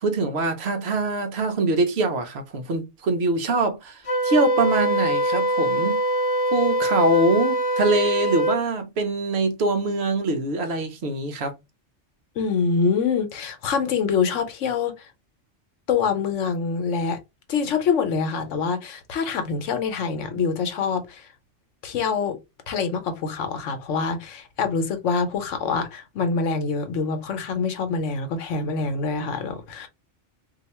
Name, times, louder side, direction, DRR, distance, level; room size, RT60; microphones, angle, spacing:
voice 1, 0.0-6.0 6.5-11.5, right 2 dB, 65° right, 0.9 m, -23 dB
Wind instrument woodwind instrument, 4.1-8.6, right 1 dB, 35° left, 0.6 m, -23 dB
voice 2, 12.4-15.1 15.9-17.2 17.5-21.3 21.8-22.4 22.7-29.9, left 5 dB, 85° left, 1.1 m, -25 dB
2.7 x 2.4 x 4.1 m
omnidirectional pair, 1.2 m